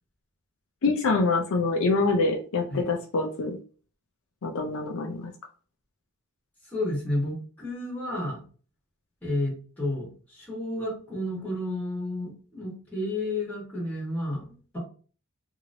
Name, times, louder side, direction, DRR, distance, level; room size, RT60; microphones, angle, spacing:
voice 1, 0.8-3.5 4.4-5.3, left 3 dB, 65° left, 2 dB, 0.5 m, -25 dB
voice 2, 6.7-8.4 9.2-14.8, left 1 dB, 10° left, -6 dB, 1.4 m, -31 dB
2.9 x 2.8 x 2.6 m, 0.39 s
head